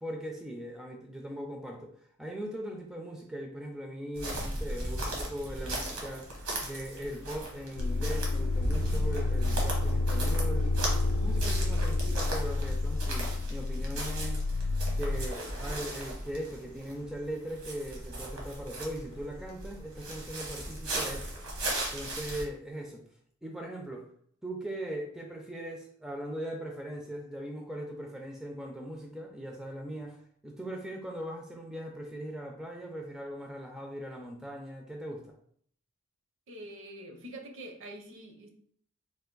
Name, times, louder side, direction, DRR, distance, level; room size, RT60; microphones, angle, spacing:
voice 1, 0.0-6.3 6.6-14.5 14.9-21.4 21.9-23.0 23.4-24.1 24.4-30.2 30.4-35.3, right 1 dB, ahead, 1 dB, 0.4 m, -40 dB
sound 1, 4.2-22.4, right 1 dB, 85° right, 1.1 m, -37 dB
sound 2, 7.8-15.3, left 2 dB, 85° left, 0.4 m, -29 dB
voice 2, 36.5-38.5, right 1 dB, 60° right, 4 dB, 0.6 m, -45 dB
3.4 x 2.5 x 3.8 m, 0.63 s
head